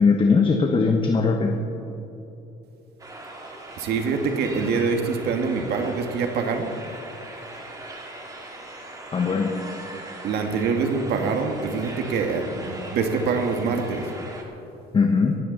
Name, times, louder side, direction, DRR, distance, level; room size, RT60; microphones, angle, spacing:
voice 1, 0.0-1.6 9.1-9.6 14.9-15.4, left 4 dB, 30° left, 4 dB, 1.1 m, -20 dB
sound 1, 3.0-14.4, right 2 dB, 20° right, 2.3 m, -39 dB
voice 2, 3.8-6.7 10.2-14.1, right 4 dB, 75° right, 5 dB, 1.7 m, -25 dB
17.0 x 15.5 x 4.0 m, 3.0 s
cardioid pair, 110°, 17 cm